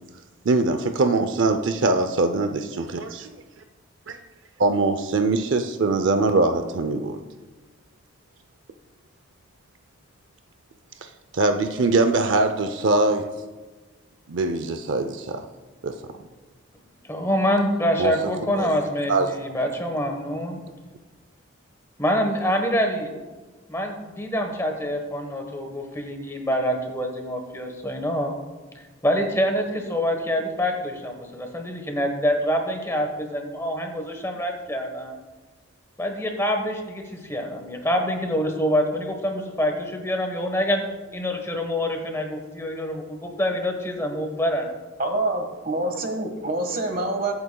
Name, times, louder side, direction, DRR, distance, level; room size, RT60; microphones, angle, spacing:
voice 1, 0.4-2.5 4.6-7.2 11.0-13.3 14.3-15.5 15.8-15.9 18.0-18.7 19.1-19.3, right 3 dB, 65° right, 7 dB, 0.5 m, -22 dB
voice 2, 17.1-20.6 22.0-23.1 23.7-28.4 28.7-35.2 36.0-40.8 41.1-44.7, equal, 15° left, 3 dB, 1.1 m, -26 dB
voice 3, 45.0-47.3, right 2 dB, 40° right, 4 dB, 1.5 m, -26 dB
21.5 x 8.7 x 2.3 m, 1.3 s
head